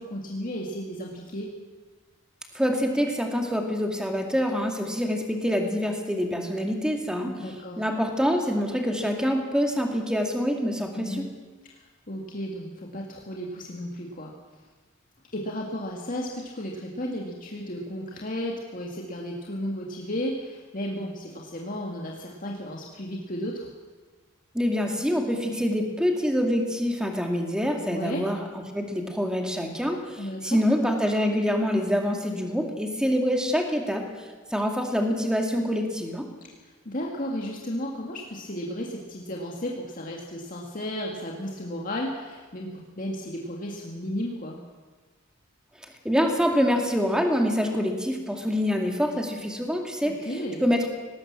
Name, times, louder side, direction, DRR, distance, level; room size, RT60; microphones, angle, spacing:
voice 1, 0.0-1.5 7.2-7.8 10.9-11.2 11.6-14.3 15.3-23.7 27.9-28.2 30.2-30.6 36.6-44.6 50.0-50.6, equal, 40° left, -2 dB, 2.0 m, -34 dB
voice 2, 2.5-7.4 7.8-11.2 24.5-28.4 28.7-34.0 34.5-36.3 46.0-50.2 50.6-50.9, equal, 5° right, 2 dB, 2.3 m, -25 dB
18.5 x 18.5 x 7.5 m, 1.4 s
head